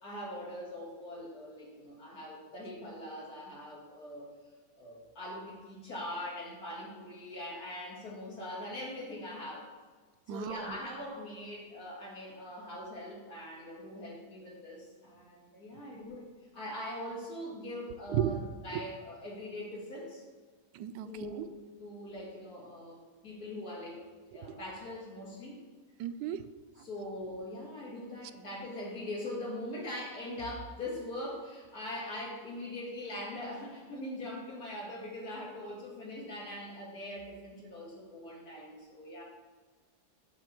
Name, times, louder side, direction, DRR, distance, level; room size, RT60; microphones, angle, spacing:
voice 1, 0.0-4.3 4.8-9.7 10.3-16.3 16.5-18.4 18.6-20.2 21.0-21.5 21.8-23.0 23.2-24.0 24.3-25.6 26.8-39.2, left 1 dB, 60° left, -5 dB, 3.0 m, -42 dB
voice 2, 10.3-10.8 18.1-18.4 18.7-18.8 20.7-21.5 24.5-24.6 26.0-26.4, right 10 dB, 85° right, 10 dB, 1.2 m, -34 dB
8.6 x 6.5 x 4.5 m, 1.4 s
omnidirectional pair, 1.8 m